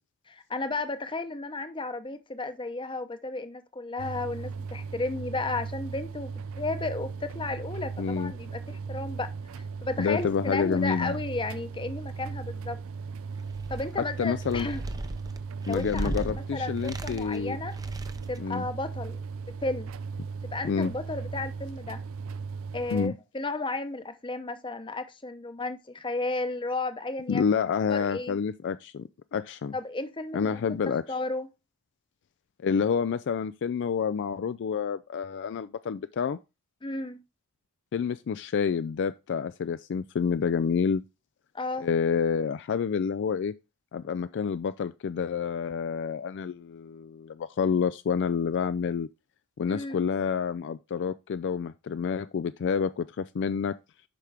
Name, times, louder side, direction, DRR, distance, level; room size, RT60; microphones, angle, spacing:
voice 1, 0.3-9.3 9.8-12.8 13.7-14.8 15.6-17.8 18.3-19.2 19.6-19.9 20.5-22.0 22.7-27.4 27.9-28.4 29.7-30.6 31.1-31.5 36.8-37.2 41.5-41.9 49.7-50.0, left 2 dB, 20° left, 0.8 m, -33 dB
sound 1, 4.0-23.1, right 5 dB, 60° right, 0.4 m, -37 dB
voice 2, 8.0-8.3 10.0-11.2 14.0-14.7 15.7-17.6 18.4-18.7 20.6-20.9 22.9-23.1 27.3-29.7 30.3-31.0 32.6-36.4 37.9-41.0 41.8-43.5 43.9-49.1 49.6-53.8, left 6 dB, 55° left, 0.3 m, -28 dB
sound 2, 13.4-14.0 14.4-16.3 16.8-17.4 17.7-18.4, right 1 dB, 15° right, 0.6 m, -36 dB
8.2 x 5.9 x 3.4 m
head